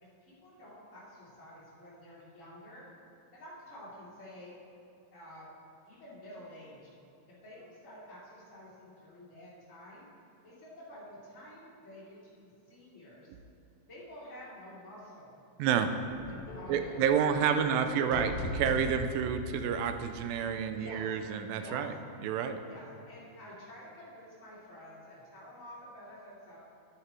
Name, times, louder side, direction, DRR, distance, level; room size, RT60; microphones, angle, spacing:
voice 1, 0.0-2.8 3.3-4.5 5.1-5.5 5.8-6.9 7.4-10.0 10.4-13.3 13.9-15.4 16.3-18.4 20.6-21.2 21.6-21.8 22.7-26.6, equal, 20° left, -9 dB, 2.9 m, -50 dB
voice 2, 15.6-15.9 16.7-21.9 22.2-22.6, right 7 dB, 80° right, 8 dB, 2.3 m, -29 dB
sound 1, 16.1-20.7, left 2 dB, 75° left, 2.5 m, -41 dB
11.0 x 9.7 x 4.5 m, 2.7 s
omnidirectional pair, 4.2 m